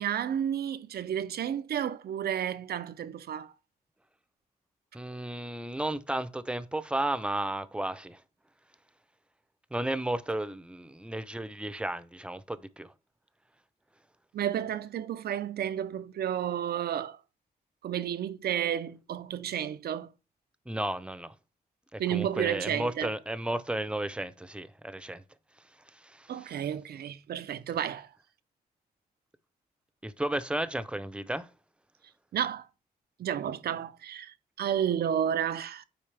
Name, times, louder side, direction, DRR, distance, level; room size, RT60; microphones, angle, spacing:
voice 1, 0.0-3.5 14.3-17.2 17.8-20.1 22.0-23.1 26.3-28.1 32.3-32.7 33.2-35.8, right 9 dB, 80° right, 0.6 m, -31 dB
voice 2, 4.9-8.2 9.7-12.9 20.7-21.3 21.9-25.2 25.6-26.5 30.0-31.5, right 1 dB, 5° right, 0.6 m, -33 dB
8.9 x 4.6 x 3.3 m
cardioid pair, 95°, 16 cm